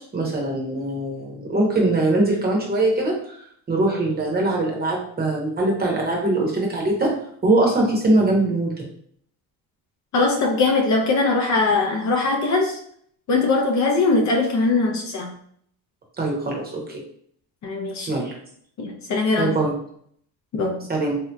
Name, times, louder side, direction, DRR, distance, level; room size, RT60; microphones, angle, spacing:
voice 1, 0.1-3.4 3.7-7.1 7.4-8.7 16.2-17.0 18.1-18.3 19.4-19.7 20.9-21.2, right 2 dB, 25° right, -1 dB, 0.8 m, -22 dB
voice 2, 10.1-12.8 13.3-15.3 17.6-18.1 18.8-19.5 20.5-20.9, left 3 dB, 45° left, 0 dB, 0.6 m, -21 dB
3.4 x 2.7 x 2.2 m, 0.63 s
cardioid pair, 130°, 40 cm